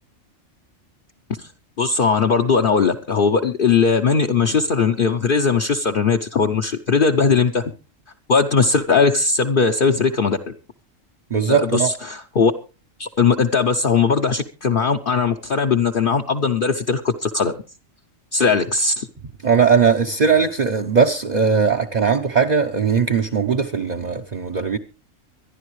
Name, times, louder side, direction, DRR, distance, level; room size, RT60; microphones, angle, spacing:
voice 1, 1.8-7.6 8.3-10.4 11.5-12.5 13.0-17.5 18.3-19.1, left 5 dB, 50° left, 0.9 m, -19 dB
voice 2, 11.3-11.9 19.4-24.8, right 5 dB, 40° right, 0.8 m, -19 dB
25.0 x 11.0 x 3.1 m
omnidirectional pair, 1.3 m